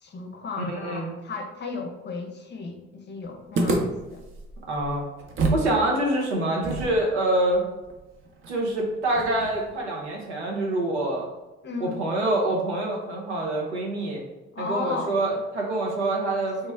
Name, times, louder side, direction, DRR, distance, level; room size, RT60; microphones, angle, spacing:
voice 1, 0.0-4.2 11.6-12.0 14.5-15.2 16.4-16.7, left 4 dB, 30° left, 3 dB, 0.6 m, -35 dB
voice 2, 0.7-1.1 4.7-5.0 5.5-7.6 8.5-11.3 11.8-14.2 14.6-16.7, right 1 dB, 90° right, -1 dB, 0.7 m, -26 dB
sound 1, 3.5-5.7 6.0-6.1 6.6-9.8, right 3 dB, 40° right, 0.7 m, -30 dB
3.2 x 2.1 x 3.4 m, 1.1 s
hypercardioid pair, 50°, 33 cm